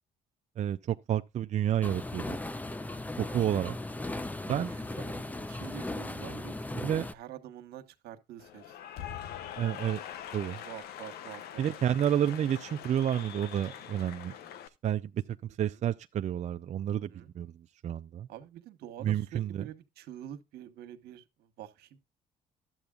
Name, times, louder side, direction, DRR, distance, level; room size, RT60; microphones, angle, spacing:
voice 1, 0.6-2.4 3.2-3.8 4.5-4.7 6.8-7.1 9.6-10.0 10.3-10.6 11.6-14.4 14.8-18.3 19.0-19.7, right 10 dB, 45° right, 0.5 m, -30 dB
sound 1, 1.8-7.1, left 2 dB, 10° left, 0.6 m, -37 dB
voice 2, 4.4-8.8 10.6-11.6 15.6-15.8 17.1-17.3 18.3-22.0, right 11 dB, 80° right, 1.3 m, -47 dB
Cheering / Applause, 8.4-14.7, left 10 dB, 75° left, 0.9 m, -43 dB
12.0 x 7.9 x 2.4 m
cardioid pair, 90°, 16 cm